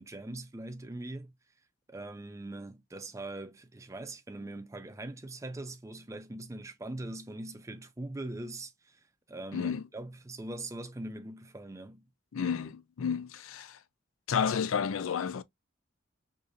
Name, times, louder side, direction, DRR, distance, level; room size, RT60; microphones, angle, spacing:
voice 1, 0.0-1.3 1.9-12.0, right 2 dB, 15° right, 0.4 m, -42 dB
voice 2, 9.5-9.8 12.3-13.8 14.3-15.4, left 7 dB, 90° left, 0.4 m, -31 dB
4.7 x 2.6 x 2.5 m
head